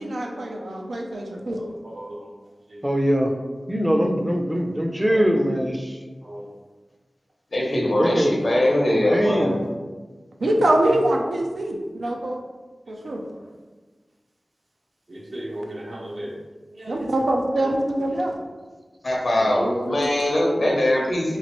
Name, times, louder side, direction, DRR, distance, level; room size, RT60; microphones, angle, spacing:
voice 1, 0.0-1.6 10.4-12.4 12.9-13.2 16.9-18.4, right 1 dB, 85° right, 1 dB, 0.4 m, -24 dB
voice 2, 1.1-2.4 2.7-2.9 5.0-5.2 6.2-6.5 8.4-8.6 12.9-13.5 15.1-16.3 16.7-17.1 17.5-18.2 19.3-20.0, right 1 dB, 65° right, -4 dB, 0.8 m, -36 dB
voice 3, 2.8-3.3 3.7-6.0 7.7-8.3 8.9-9.7, equal, 15° right, 3 dB, 0.4 m, -22 dB
voice 4, 7.5-9.5 19.0-21.4, left 1 dB, 65° left, -1 dB, 0.7 m, -21 dB
3.0 x 2.4 x 2.9 m, 1.3 s
cardioid pair, 45°, 0 cm